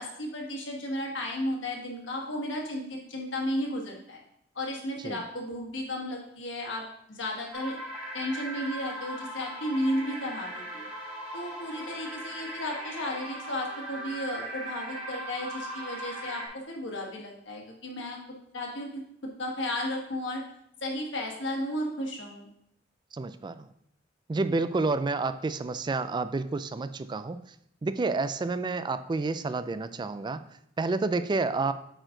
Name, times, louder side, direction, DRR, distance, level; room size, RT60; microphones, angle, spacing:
voice 1, 0.0-4.2 4.5-7.8 8.1-10.9 11.3-18.2 18.5-19.0 19.4-20.4 20.8-22.5, left 1 dB, 70° left, 0 dB, 1.7 m, -34 dB
sound 1, 7.5-16.5, right 1 dB, 10° right, 2.1 m, -39 dB
voice 2, 23.1-23.7 24.3-27.4 27.8-30.4 30.8-31.7, right 3 dB, 25° right, 12 dB, 0.3 m, -29 dB
8.8 x 4.5 x 3.9 m, 0.74 s
head